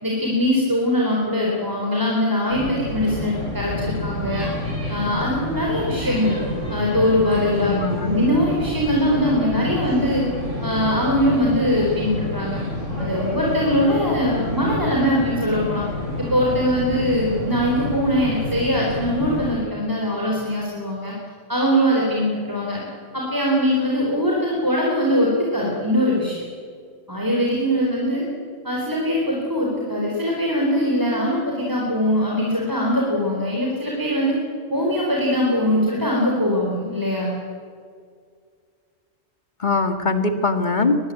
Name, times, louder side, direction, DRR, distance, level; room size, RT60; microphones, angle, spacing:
voice 1, 0.0-4.5 4.9-6.4 6.7-10.2 10.6-12.6 13.0-15.8 16.2-21.1 21.5-22.8 23.1-26.4 27.1-28.2 28.6-34.3 34.7-37.4, equal, 15° right, -2 dB, 4.1 m, -21 dB
sound 1, 2.5-19.5, left 1 dB, 80° right, 8.7 m, -29 dB
voice 2, 7.6-8.2 39.6-41.0, left 3 dB, 40° left, 7 dB, 2.2 m, -22 dB
23.0 x 21.5 x 8.7 m, 2.1 s
omnidirectional pair, 1.3 m